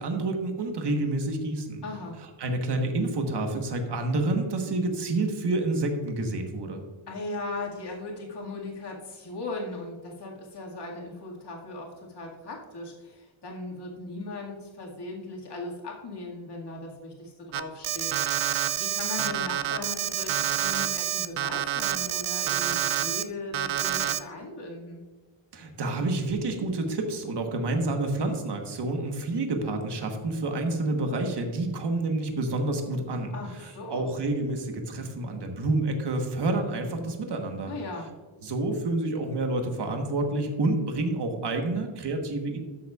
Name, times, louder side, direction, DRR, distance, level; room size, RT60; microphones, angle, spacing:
voice 1, 0.0-1.8 2.4-6.8 25.5-33.3 33.9-37.7 38.4-42.6, right 2 dB, 55° right, 4 dB, 1.3 m, -28 dB
voice 2, 1.8-2.2 7.1-25.0 33.3-34.1 37.7-38.1, left 2 dB, 55° left, -2 dB, 2.0 m, -38 dB
Alarm, 17.5-23.2 23.5-24.2, right 11 dB, 80° right, 0.6 m, -28 dB
12.5 x 6.8 x 2.4 m, 1.4 s
wide cardioid pair, 160°, 48 cm